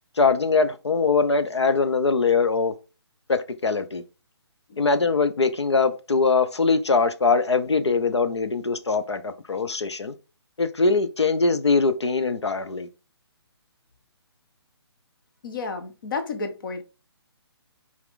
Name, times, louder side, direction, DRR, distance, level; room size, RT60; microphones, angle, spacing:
voice 1, 0.2-2.7 3.3-4.0 4.8-10.1 10.6-12.9, left 4 dB, 85° left, 1.0 m, -22 dB
voice 2, 15.4-16.8, left 4 dB, 50° left, 1.7 m, -31 dB
5.8 x 4.9 x 3.9 m
figure-of-eight pair, 145°, 14 cm